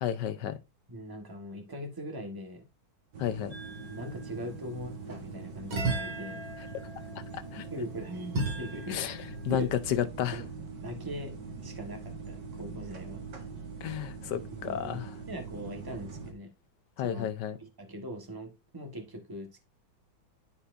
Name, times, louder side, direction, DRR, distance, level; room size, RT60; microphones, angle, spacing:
voice 1, 0.0-0.6 3.2-3.5 7.3-7.7 8.9-10.4 13.8-15.1 17.0-17.6, left 10 dB, 70° left, 1.2 m, -32 dB
voice 2, 0.9-2.6 3.8-6.4 7.7-9.0 9.5-9.7 10.3-10.5 10.8-11.3 11.6-13.2 14.5-16.5 17.0-17.3 17.6-19.6, equal, 15° right, 1.1 m, -41 dB
sound 1, 3.1-16.3, right 4 dB, 60° right, 2.1 m, -43 dB
sound 2, 3.5-4.3 5.7-9.3, right 3 dB, 80° right, 3.3 m, -36 dB
12.5 x 4.3 x 2.6 m
omnidirectional pair, 2.2 m